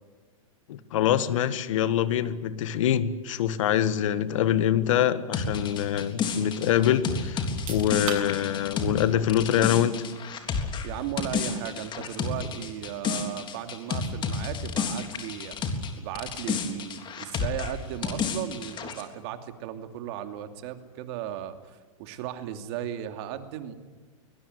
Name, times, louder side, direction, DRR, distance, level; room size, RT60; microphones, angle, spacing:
voice 1, 0.7-10.0, left 10 dB, 65° left, 13 dB, 1.8 m, -25 dB
sound 1, 5.3-15.9 16.2-19.0, left 5 dB, 25° left, 3.6 m, -31 dB
sound 2, 6.5-10.0 10.3-13.5, equal, 5° left, 7.0 m, -50 dB
sound 3, 7.4-20.1, right 8 dB, 70° right, 7.6 m, -48 dB
voice 2, 10.8-15.6 16.0-23.7, right 11 dB, 50° right, 8 dB, 2.7 m, -36 dB
23.0 x 21.0 x 9.7 m, 1.3 s
hypercardioid pair, 125°, 17 cm